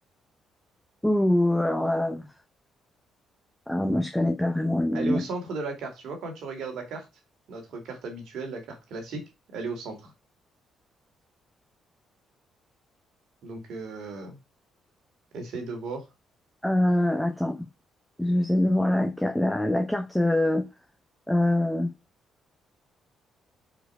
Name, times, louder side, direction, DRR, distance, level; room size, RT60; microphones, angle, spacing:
voice 1, 1.0-2.3 3.7-5.2 16.6-17.6 18.2-20.6 21.3-21.9, left 1 dB, 5° left, 1.0 m, -24 dB
voice 2, 4.9-7.1 7.5-9.2 9.5-10.1 13.4-14.4 15.3-16.1, right 3 dB, 65° right, 2.2 m, -35 dB
4.6 x 4.5 x 4.7 m
hypercardioid pair, 50°, 0 cm